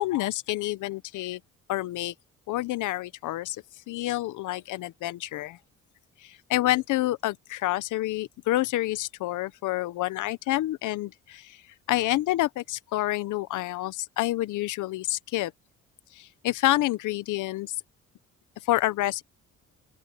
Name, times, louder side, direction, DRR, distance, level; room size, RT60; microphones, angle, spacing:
voice 1, 0.0-1.4 1.7-2.1 2.5-3.6 3.9-5.6 6.5-11.4 11.9-15.5 16.4-17.7 18.7-19.2, left 16 dB, 85° left, 0.8 m, -28 dB
open air
cardioid pair, 90°, 30 cm